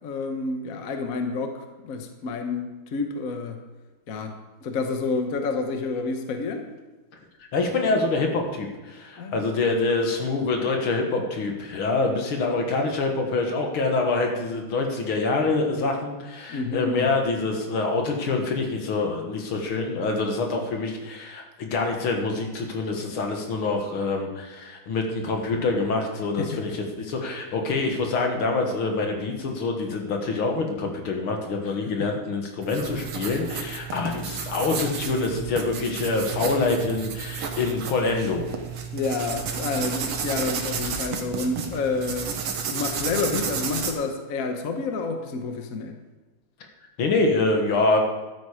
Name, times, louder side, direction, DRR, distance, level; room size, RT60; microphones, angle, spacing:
voice 1, 0.0-3.6 4.1-6.7 9.2-9.5 16.5-17.1 26.4-26.6 31.6-32.1 38.9-42.3 42.7-45.9, left 4 dB, 50° left, 5 dB, 1.2 m, -29 dB
voice 2, 7.5-26.7 27.0-38.5 47.0-48.0, left 3 dB, 70° left, 2 dB, 2.4 m, -25 dB
sound 1, 32.6-43.9, right 6 dB, 90° right, 2.2 m, -32 dB
12.5 x 9.1 x 5.0 m, 1.2 s
omnidirectional pair, 2.4 m